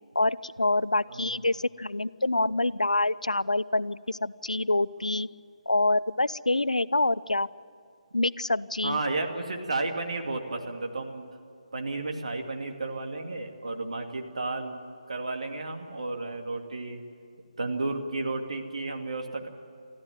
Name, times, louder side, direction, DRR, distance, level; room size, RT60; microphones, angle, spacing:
voice 1, 0.2-5.3 5.7-7.5 8.1-9.0, left 2 dB, 80° left, 18 dB, 0.5 m, -26 dB
voice 2, 8.8-11.3 11.7-14.8 15.1-17.0 17.6-19.5, right 2 dB, 60° right, 3 dB, 2.4 m, -32 dB
24.0 x 14.5 x 9.3 m, 2.5 s
figure-of-eight pair, 145°, 4 cm